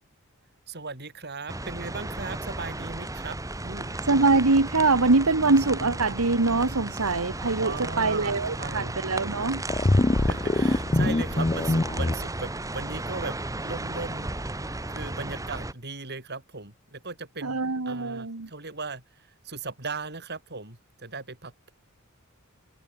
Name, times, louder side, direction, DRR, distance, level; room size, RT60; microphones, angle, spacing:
voice 1, 0.7-3.4 3.6-4.0 7.6-9.0 10.1-13.4 13.6-14.3 14.9-21.7, right 3 dB, 50° right, 6.7 m, -37 dB
sound 1, 1.5-15.7, right 2 dB, 15° right, 1.5 m, -34 dB
voice 2, 4.1-9.6 17.4-18.5, right 3 dB, 80° right, 1.5 m, -23 dB
sound 2, 9.7-12.1, left 2 dB, 25° left, 0.6 m, -23 dB
open air
head